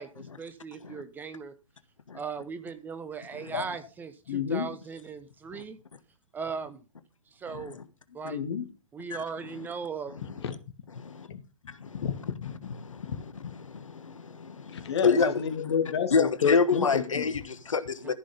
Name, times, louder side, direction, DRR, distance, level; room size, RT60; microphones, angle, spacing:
voice 1, 0.0-1.5 2.1-5.8 6.3-6.8 7.3-7.8 8.1-8.4 8.9-10.2 18.0-18.1, right 5 dB, 10° right, 0.8 m, -38 dB
voice 2, 4.3-4.7 7.5-7.6 8.2-8.7 10.4-10.6 11.3-12.8 13.0-13.2 14.7-17.3, left 7 dB, 55° left, 2.3 m, -30 dB
voice 3, 10.9-11.3 11.8-12.1 12.8-15.4 16.1-18.1, left 5 dB, 70° left, 1.3 m, -28 dB
14.5 x 6.3 x 5.6 m
figure-of-eight pair, 125°, 17 cm